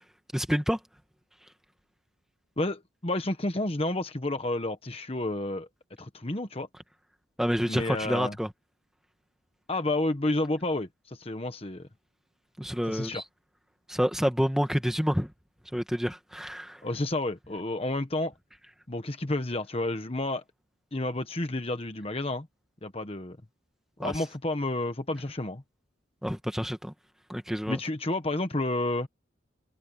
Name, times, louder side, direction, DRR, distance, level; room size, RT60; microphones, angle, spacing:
voice 1, 0.3-0.8 7.4-8.5 12.6-13.2 13.9-15.3 15.7-16.8 24.0-24.1 26.2-26.9 27.3-27.8, equal, ahead, 1.6 m, -28 dB
voice 2, 2.6-5.7 6.0-6.7 7.7-8.4 9.7-11.9 12.9-13.2 16.8-18.3 18.9-20.4 20.9-22.5 22.8-23.4 24.0-25.6 27.7-29.1, left 2 dB, 30° left, 1.2 m, -30 dB
head